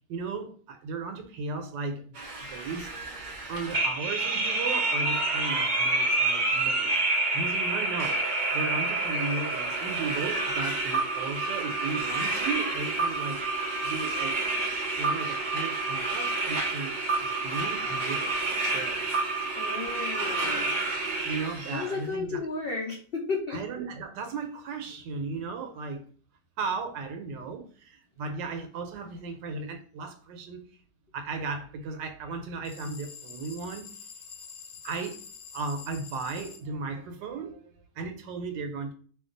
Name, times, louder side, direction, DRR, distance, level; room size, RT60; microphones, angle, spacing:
voice 1, 0.1-2.1 2.5-3.2 3.5-7.0 7.3-8.2 8.5-13.4 13.8-14.4 15.0-18.4 18.7-19.1 20.9-22.5 23.5-26.0 26.6-30.7 31.1-33.9 34.8-35.2 35.5-38.9, right 4 dB, 80° right, 1.3 m, -36 dB
sound 1, 2.1-21.9, right 2 dB, 65° right, 0.4 m, -29 dB
voice 2, 19.5-20.8 21.7-23.6, left 4 dB, 70° left, 0.5 m, -33 dB
sound 2, 32.6-36.6, left 6 dB, 85° left, 1.3 m, -46 dB
2.8 x 2.3 x 3.8 m
omnidirectional pair, 1.9 m